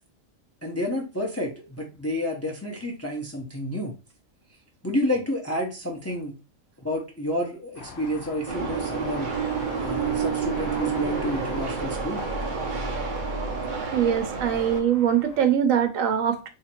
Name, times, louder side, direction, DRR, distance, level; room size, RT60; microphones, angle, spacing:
voice 1, 0.6-3.9 4.8-6.4 6.8-9.3 9.7-12.3, left 1 dB, 15° left, 0.5 m, -30 dB
sound 1, 7.8-15.5, left 4 dB, 70° left, 0.9 m, -41 dB
sound 2, 8.5-14.8, right 6 dB, 50° right, 0.7 m, -29 dB
voice 2, 13.9-16.5, right 9 dB, 80° right, 1.1 m, -22 dB
2.8 x 2.5 x 4.3 m
omnidirectional pair, 1.4 m